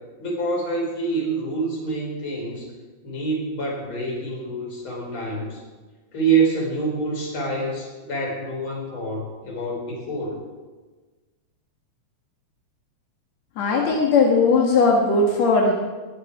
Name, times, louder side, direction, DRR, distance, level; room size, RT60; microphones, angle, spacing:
voice 1, 0.2-2.7 3.0-5.6 6.1-10.4, right 3 dB, 25° left, -2 dB, 4.8 m, -26 dB
voice 2, 13.6-15.7, left 3 dB, 60° left, -1 dB, 1.8 m, -18 dB
20.0 x 13.5 x 4.8 m, 1.3 s
omnidirectional pair, 5.3 m